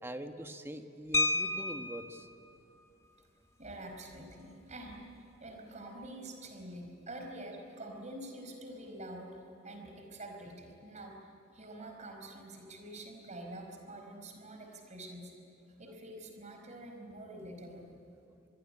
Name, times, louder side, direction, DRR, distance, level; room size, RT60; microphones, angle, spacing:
voice 1, 0.0-2.3, equal, 10° right, 6 dB, 1.3 m, -43 dB
sound 1, 1.1-2.2 3.7-3.8 4.1-4.3 4.7-5.0, left 1 dB, 15° left, 0.9 m, -31 dB
voice 2, 3.6-5.1 5.4-9.4 9.6-11.2 11.5-15.3 15.8-17.9, right 1 dB, 35° right, 3 dB, 4.8 m, -46 dB
26.5 x 21.5 x 9.9 m, 2.7 s
head